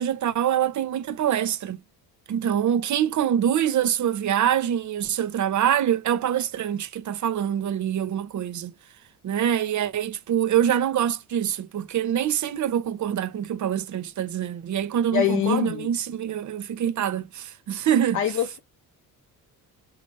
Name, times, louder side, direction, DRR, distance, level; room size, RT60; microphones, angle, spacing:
voice 1, 0.0-1.8 2.3-8.7 9.2-18.2, right 10 dB, 50° right, 0.8 m, -25 dB
voice 2, 15.1-15.9 18.1-18.6, left 10 dB, 50° left, 0.8 m, -24 dB
4.8 x 3.2 x 2.6 m
cardioid pair, 120°, 37 cm